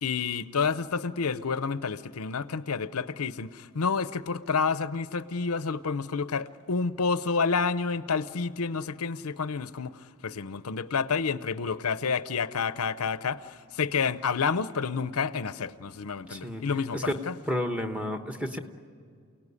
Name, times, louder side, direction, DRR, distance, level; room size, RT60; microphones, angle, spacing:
voice 1, 0.0-17.3, left 5 dB, 80° left, 14 dB, 0.7 m, -29 dB
voice 2, 16.3-16.6 16.9-17.2 17.5-18.6, left 1 dB, 5° right, 5 dB, 1.1 m, -31 dB
29.0 x 17.5 x 9.7 m, 2.2 s
head